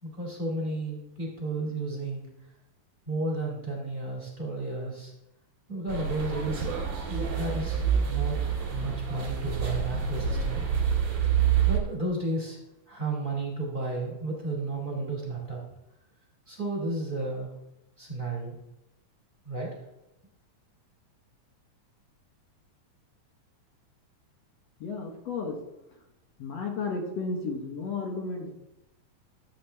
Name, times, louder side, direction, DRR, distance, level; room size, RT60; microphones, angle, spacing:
voice 1, 0.0-2.3 3.0-5.1 5.7-6.7 7.1-8.4 8.7-10.6 11.6-12.6 12.9-15.6 16.5-17.5 18.0-18.5 19.4-19.7, right 2 dB, 20° right, -3 dB, 1.7 m, -32 dB
sound 1, 5.9-11.8, right 7 dB, 65° right, 3.4 m, -27 dB
voice 2, 24.8-25.6 26.4-28.6, left 4 dB, 60° left, 1 dB, 1.9 m, -33 dB
13.0 x 7.7 x 3.4 m, 0.90 s
omnidirectional pair, 3.9 m